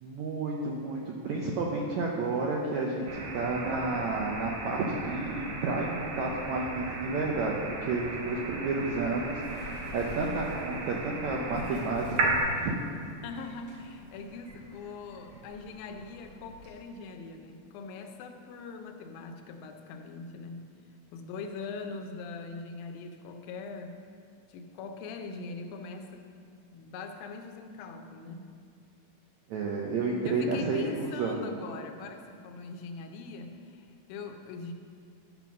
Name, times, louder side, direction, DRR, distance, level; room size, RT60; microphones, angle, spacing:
voice 1, 0.0-12.8 29.5-31.4, right 3 dB, 80° right, -1 dB, 1.6 m, -31 dB
sound 1, 3.1-12.4, right 3 dB, 65° right, 2.3 m, -36 dB
Bird, 8.6-16.9, left 2 dB, 35° right, 3.1 m, -49 dB
voice 2, 13.2-20.7 21.1-24.0 24.5-26.3 26.7-28.5 30.2-34.7, left 4 dB, 80° left, 5 dB, 2.5 m, -42 dB
10.5 x 5.4 x 6.2 m, 2.2 s
omnidirectional pair, 4.2 m